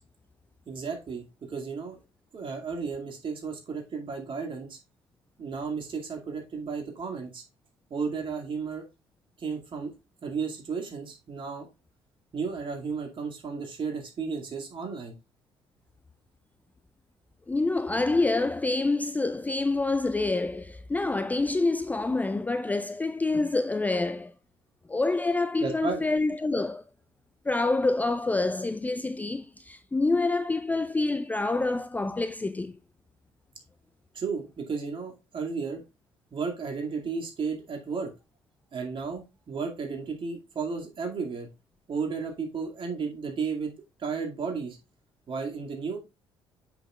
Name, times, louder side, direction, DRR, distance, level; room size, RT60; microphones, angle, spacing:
voice 1, 0.7-2.0 2.3-4.8 5.4-7.4 7.9-8.8 9.4-9.9 10.2-11.7 12.3-15.1 25.6-26.1 34.1-35.8 36.3-38.1 38.7-41.5 41.9-43.7 44.0-44.8 45.3-46.0, right 5 dB, 40° right, 2.2 m, -33 dB
voice 2, 17.5-24.3 24.9-26.8 27.5-32.7, left 3 dB, 10° left, 0.4 m, -27 dB
7.7 x 6.0 x 2.4 m
figure-of-eight pair, 50°, 13 cm